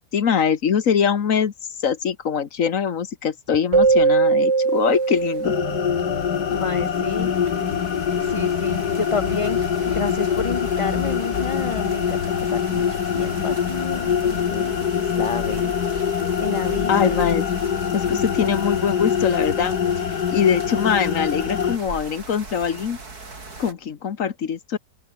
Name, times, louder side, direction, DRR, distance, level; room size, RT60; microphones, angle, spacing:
voice 1, 0.1-1.5 1.8-5.5 16.9-17.4 17.9-19.8 20.3-23.0 23.6-24.8, left 7 dB, 60° left, 1.5 m, -22 dB
Keyboard (musical), 3.7-6.5, right 4 dB, 30° right, 0.6 m, -20 dB
sound 1, 4.2-23.7, right 3 dB, 75° right, 4.4 m, -40 dB
sound 2, 5.4-21.8, left 8 dB, 85° left, 2.0 m, -24 dB
voice 2, 6.5-7.3 8.2-15.7 16.4-17.2, left 4 dB, 25° left, 1.1 m, -30 dB
open air
omnidirectional pair, 1.6 m